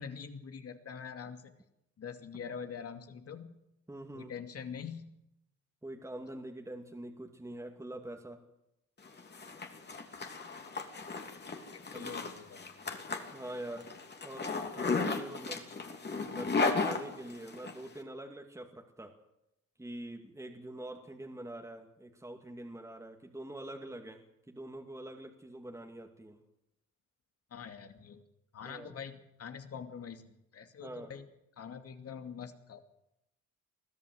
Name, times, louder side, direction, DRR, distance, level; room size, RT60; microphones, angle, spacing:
voice 1, 0.0-1.5 2.0-3.6 4.1-5.1 11.7-12.6 27.5-28.2 28.5-31.2 31.6-32.8, left 6 dB, 50° left, 7 dB, 2.6 m, -44 dB
voice 2, 3.9-4.3 5.8-8.4 11.9-12.1 13.3-13.9 14.2-19.1 19.8-26.4 28.6-28.9 30.8-31.2, right 1 dB, 10° right, 2 dB, 2.5 m, -45 dB
Zipper (clothing), 9.1-17.7, left 4 dB, 35° left, 3.1 m, -35 dB
23.5 x 14.0 x 8.0 m, 0.85 s
cardioid pair, 90°, 30 cm